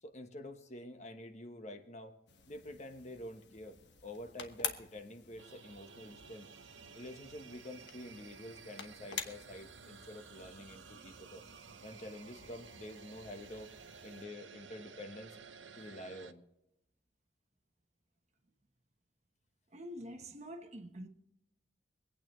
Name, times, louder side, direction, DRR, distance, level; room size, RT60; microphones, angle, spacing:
voice 1, 0.0-2.2 2.5-6.5 6.9-11.4 11.8-13.7 14.0-15.4 15.8-16.4, left 1 dB, 40° left, 1.1 m, -48 dB
sound 1, 2.3-14.2, left 7 dB, 65° left, 1.2 m, -49 dB
sound 2, 5.4-16.3, right 6 dB, 85° right, 0.7 m, -54 dB
voice 2, 19.7-21.1, equal, 40° right, 1.0 m, -46 dB
24.5 x 9.0 x 3.1 m
head